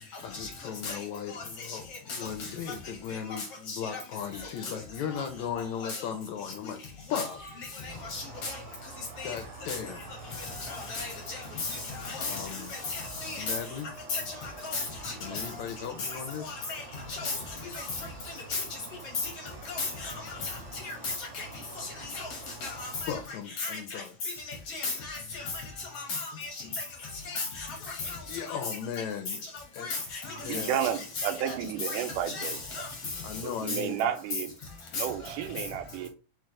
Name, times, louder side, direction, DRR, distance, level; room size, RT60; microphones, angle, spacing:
voice 1, 0.2-6.8 7.1-7.4 9.2-10.1 12.2-12.7 13.4-13.9 15.2-16.6 20.4-20.5 23.1-24.1 26.1-26.2 26.6-26.7 28.3-29.4 29.7-29.9 30.4-30.7 33.2-34.0, left 8 dB, 75° left, 1.7 m, -37 dB
sound 1, 4.1-6.1 6.8-7.8 8.4-11.9 12.2-15.7, left 1 dB, 25° left, 0.6 m, -52 dB
voice 2, 7.8-8.6 9.2-9.3 9.7-9.8 10.4-12.4 12.9-13.5 14.1-15.1 16.1-16.8 17.1-17.4 17.7-17.8 18.5-18.6 19.7-20.1 20.4-20.5 20.8-21.5 21.8-22.3 22.6-23.2 23.6-24.0 24.7-25.4 25.9-26.5 27.3-28.2 28.5-28.6 29.8-30.7 31.2-31.3 31.8-32.9 33.7-33.8 34.9-35.0, left 3 dB, 60° left, 1.7 m, -35 dB
sound 2, 7.9-23.0, right 3 dB, 65° right, 1.5 m, -47 dB
voice 3, 30.4-32.9 33.4-34.5 34.9-36.1, right 9 dB, 85° right, 2.1 m, -32 dB
4.5 x 3.2 x 3.6 m
omnidirectional pair, 3.7 m